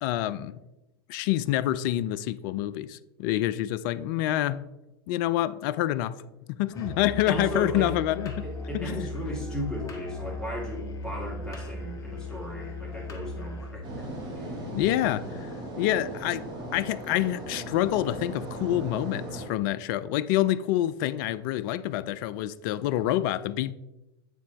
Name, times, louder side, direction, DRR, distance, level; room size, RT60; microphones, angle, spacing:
voice 1, 0.0-0.6 1.1-4.6 5.1-6.2 6.5-8.5 8.7-9.1 14.7-15.5 15.8-23.7, left 13 dB, 50° left, 0.4 m, -27 dB
Musical instrument, 6.7-13.9, left 2 dB, 25° left, 1.3 m, -37 dB
voice 2, 7.3-8.0 8.4-14.1 14.3-14.6, equal, 5° left, 2.3 m, -36 dB
sound 1, 13.8-19.5, right 1 dB, 35° right, 2.3 m, -37 dB
8.8 x 4.2 x 3.0 m
hypercardioid pair, 95°, 14 cm